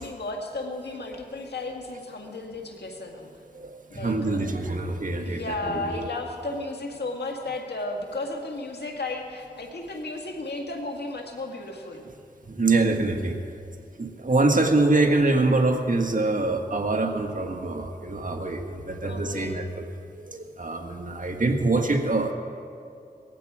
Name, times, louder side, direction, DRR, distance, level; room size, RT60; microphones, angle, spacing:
voice 1, 0.0-3.3 3.9-4.4 5.3-12.1 19.0-19.6, left 2 dB, 85° left, 2 dB, 1.9 m, -34 dB
voice 2, 3.5-6.0 12.5-13.4 14.0-19.9 20.1-22.3, right 2 dB, 55° right, 4 dB, 1.7 m, -25 dB
18.5 x 15.0 x 4.9 m, 2.4 s
cardioid pair, 45°, 17 cm